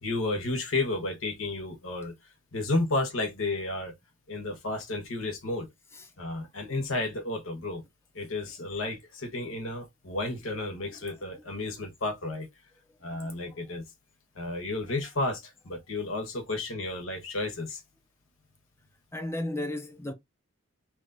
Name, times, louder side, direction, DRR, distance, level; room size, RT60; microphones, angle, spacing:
voice 1, 0.0-2.1 2.5-3.9 4.3-5.7 6.2-7.8 8.1-12.5 13.0-13.8 14.4-17.8, left 2 dB, 80° left, 1.4 m, -32 dB
voice 2, 19.1-20.1, left 1 dB, 15° left, 0.7 m, -34 dB
3.2 x 3.1 x 3.9 m
head